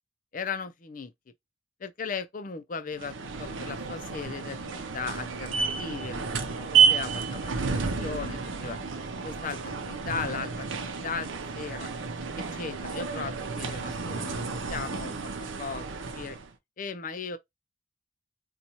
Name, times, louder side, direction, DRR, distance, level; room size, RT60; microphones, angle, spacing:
voice 1, 0.3-1.1 1.8-8.8 9.2-11.9 12.4-16.4 16.8-17.4, left 5 dB, 45° left, 0.5 m, -37 dB
sound 1, 3.0-16.5, right 5 dB, 85° right, 0.6 m, -30 dB
4.1 x 2.3 x 2.9 m
head